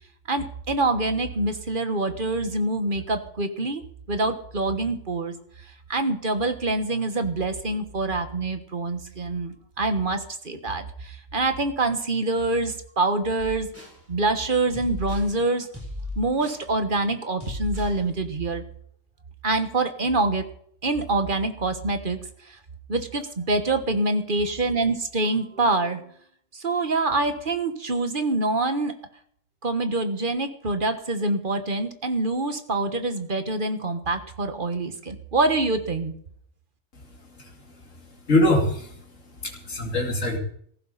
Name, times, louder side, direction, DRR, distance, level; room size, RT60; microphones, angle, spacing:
voice 1, 0.3-3.8 4.1-5.3 5.9-13.7 14.1-15.7 16.2-18.6 19.4-20.5 20.8-22.2 22.5-22.6 22.9-26.0 26.5-28.9 29.6-36.1, right 2 dB, 45° right, 8 dB, 1.5 m, -25 dB
sound 1, 13.4-14.0 14.7-15.3 15.7-16.7 17.4-18.0, left 2 dB, 10° right, 4.0 m, -35 dB
voice 2, 38.3-38.9 39.4-40.4, left 1 dB, 80° left, 0 dB, 2.9 m, -22 dB
17.0 x 15.0 x 4.1 m, 0.64 s
omnidirectional pair, 1.3 m